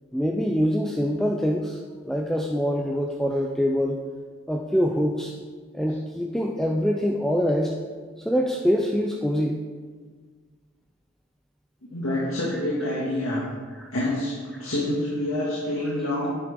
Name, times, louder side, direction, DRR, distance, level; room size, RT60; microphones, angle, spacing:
voice 1, 0.1-1.8 2.0-4.0 4.5-5.3 5.7-7.8 8.2-9.6 13.8-13.9, equal, ahead, 0 dB, 0.5 m, -24 dB
voice 2, 11.8-13.5 13.9-16.3, left 1 dB, 85° left, -6 dB, 2.0 m, -27 dB
9.8 x 9.0 x 3.6 m, 1.5 s
head